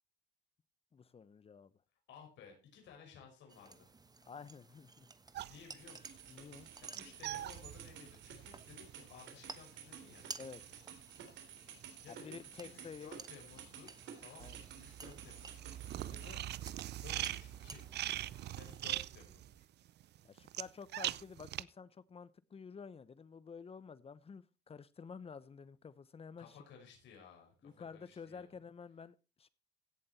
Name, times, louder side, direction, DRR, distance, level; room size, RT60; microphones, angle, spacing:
voice 1, 0.9-1.7 4.3-5.1 6.3-6.7 10.4-10.6 12.1-13.1 14.4-14.6 20.2-26.6 27.6-29.5, left 6 dB, 30° left, 1.0 m, -51 dB
voice 2, 2.1-3.9 5.5-6.2 6.8-10.3 12.0-15.8 16.1-16.4 16.9-17.8 18.6-19.6 26.4-28.6, left 6 dB, 75° left, 6.0 m, -57 dB
sound 1, 3.5-18.8, right 3 dB, 20° right, 1.2 m, -55 dB
sound 2, 5.3-12.8 13.1-21.6, right 13 dB, 65° right, 0.6 m, -43 dB
sound 3, 5.8-16.3, right 8 dB, 80° right, 3.6 m, -53 dB
16.5 x 7.4 x 4.3 m
cardioid pair, 105°, 19 cm